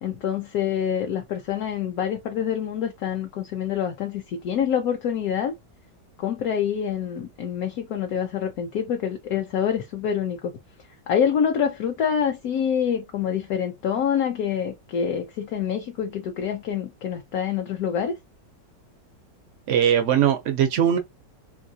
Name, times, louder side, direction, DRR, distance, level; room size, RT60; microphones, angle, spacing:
voice 1, 0.0-5.5 6.2-10.5 11.1-18.1, left 8 dB, 70° left, 0.9 m, -26 dB
voice 2, 19.7-21.0, right 9 dB, 80° right, 0.6 m, -20 dB
2.9 x 2.7 x 2.7 m
omnidirectional pair, 1.9 m